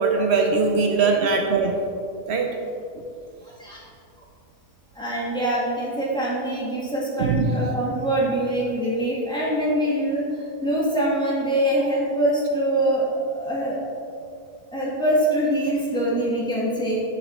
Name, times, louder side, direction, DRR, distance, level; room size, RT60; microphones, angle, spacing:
voice 1, 0.0-1.8 2.3-2.6 7.2-7.7, right 4 dB, 70° right, 3 dB, 0.6 m, -21 dB
voice 2, 0.8-1.1 3.4-3.8 4.9-13.8 14.7-17.0, right 1 dB, 5° left, -6 dB, 1.4 m, -24 dB
7.2 x 5.7 x 3.1 m, 2.5 s
omnidirectional pair, 1.6 m